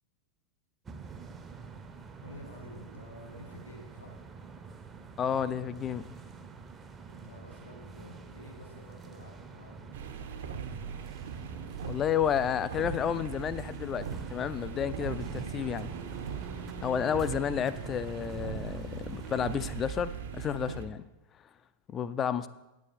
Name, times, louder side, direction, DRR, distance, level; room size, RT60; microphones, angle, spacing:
sound 1, 0.9-19.9, right 5 dB, 20° right, 0.7 m, -46 dB
voice 1, 2.2-4.2 7.1-10.2, left 2 dB, 70° left, 2 dB, 1.7 m, -50 dB
voice 2, 5.2-6.1 11.9-15.9 16.8-21.1 21.9-22.5, left 8 dB, 25° left, 15 dB, 0.4 m, -31 dB
sound 2, 9.9-20.9, right 7 dB, 60° right, 0.9 m, -40 dB
8.8 x 8.4 x 4.3 m, 1.0 s
figure-of-eight pair, 90°, 0 cm